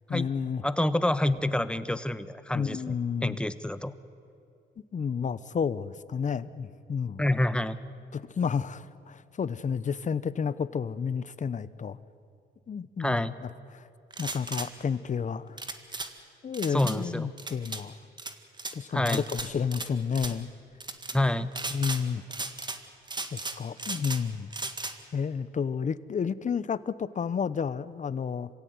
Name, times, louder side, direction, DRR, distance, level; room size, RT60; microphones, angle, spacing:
voice 1, 0.1-0.6 2.5-3.4 4.9-7.2 8.1-12.0 12.7-13.8 14.2-15.6 16.4-18.0 18.7-20.5 21.7-22.2 23.3-24.5 25.1-28.5, left 6 dB, 40° left, 17 dB, 0.9 m, -31 dB
voice 2, 0.6-3.9 7.2-7.8 13.0-13.3 16.7-17.3 18.9-19.2 21.1-21.5, left 1 dB, 5° left, 13 dB, 1.0 m, -27 dB
sound 1, 14.1-14.7 15.6-16.1 16.5-17.0 17.4-17.8 18.2-18.7 19.1-19.9 20.1-20.3 20.8-21.2 21.5-22.0 22.3-22.8 23.1-24.2 24.5-24.9, right 3 dB, 20° right, 1.9 m, -36 dB
26.5 x 16.5 x 9.5 m, 2.6 s
cardioid pair, 90°, 20 cm